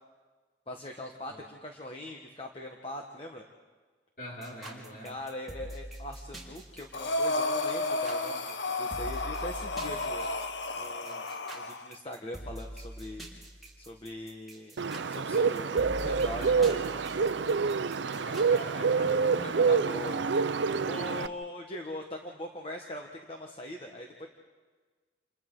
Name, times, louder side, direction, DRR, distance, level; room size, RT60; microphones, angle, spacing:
voice 1, 0.7-3.4 5.0-10.3 10.8-11.2 11.5-13.3 13.8-14.8 15.1-17.1 19.4-20.2 20.6-24.3, left 1 dB, 30° left, 2 dB, 1.4 m, -41 dB
voice 2, 4.2-5.2 17.9-20.2, right 1 dB, 50° left, -3 dB, 5.4 m, -43 dB
sound 1, 4.4-18.6, right 1 dB, ahead, 4.2 m, -44 dB
Breathing, 6.9-11.9, left 2 dB, 85° left, 1.1 m, -32 dB
Bird, 14.8-21.3, right 5 dB, 90° right, 0.6 m, -27 dB
29.5 x 29.0 x 3.9 m, 1.4 s
head